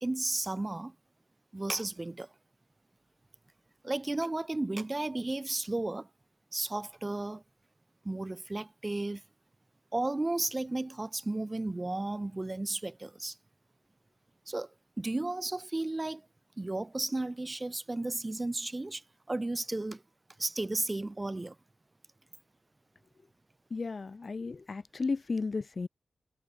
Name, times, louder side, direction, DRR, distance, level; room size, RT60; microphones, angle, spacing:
voice 1, 0.0-0.9 1.5-2.3 3.8-6.1 6.5-7.4 8.0-9.2 9.9-13.4 14.5-14.7 15.0-16.2 16.6-19.0 19.3-20.0 20.4-21.5, right 2 dB, 20° right, 0.7 m, -33 dB
voice 2, 23.7-25.9, left 4 dB, 40° left, 0.6 m, -34 dB
wide cardioid pair, 115°, 0 cm